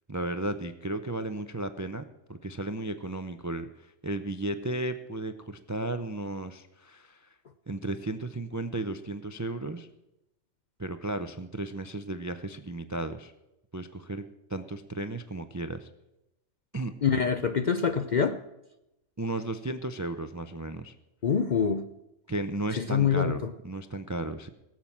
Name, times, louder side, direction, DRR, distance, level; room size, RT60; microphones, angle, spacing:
voice 1, 0.1-2.0 2.3-7.3 7.7-9.9 10.8-13.3 13.7-15.9 16.7-16.9 19.2-20.9 22.3-24.5, right 2 dB, 30° right, 9 dB, 0.3 m, -34 dB
voice 2, 17.0-18.4 21.2-21.9 22.8-23.5, left 6 dB, 55° left, 9 dB, 0.5 m, -25 dB
17.5 x 7.5 x 7.2 m, 0.91 s
omnidirectional pair, 1.3 m